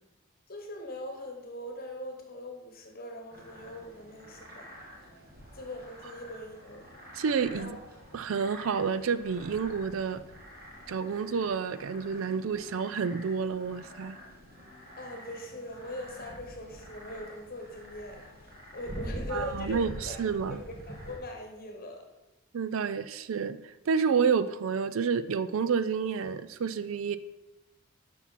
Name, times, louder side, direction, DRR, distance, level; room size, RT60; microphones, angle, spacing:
voice 1, 0.5-4.7 5.5-6.9 7.6-7.8 14.9-22.1, left 1 dB, 45° left, 3 dB, 1.1 m, -41 dB
sound 1, 3.3-21.2, equal, 45° right, 1.9 m, -46 dB
voice 2, 7.1-7.8 8.1-10.2 10.9-14.2 19.3-20.6 22.5-27.2, right 6 dB, 65° right, 14 dB, 0.4 m, -29 dB
11.5 x 5.8 x 4.1 m, 1.0 s
head